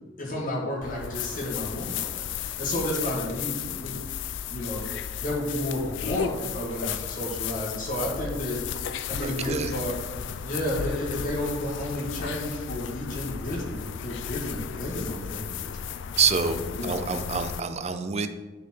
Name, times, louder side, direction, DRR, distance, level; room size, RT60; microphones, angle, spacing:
voice 1, 0.2-4.0 4.5-4.9 5.2-8.6 9.1-9.9 10.4-15.7 16.8-17.0, left 1 dB, 40° left, -3 dB, 2.0 m, -31 dB
sound 1, 0.8-17.6, left 8 dB, 65° left, 0.4 m, -34 dB
voice 2, 9.2-9.7 16.2-18.3, right 6 dB, 35° right, 9 dB, 0.5 m, -27 dB
9.9 x 4.2 x 4.5 m, 1.3 s
head